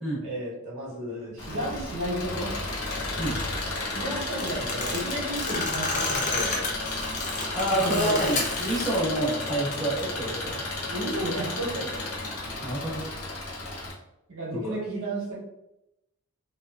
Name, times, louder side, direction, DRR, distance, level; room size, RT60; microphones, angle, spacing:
voice 1, 0.2-2.5 3.9-6.6 7.7-8.3 10.8-12.1 14.3-15.4, right 1 dB, 75° right, -4 dB, 0.8 m, -32 dB
Engine, 1.4-13.9, left 2 dB, 85° left, 0.7 m, -33 dB
sound 1, 4.3-9.0 9.3-10.0, left 3 dB, 35° left, 0.5 m, -31 dB
voice 2, 7.5-10.6 12.6-13.1 14.5-14.8, right 1 dB, ahead, -8 dB, 1.0 m, -28 dB
2.8 x 2.2 x 2.3 m, 0.88 s
head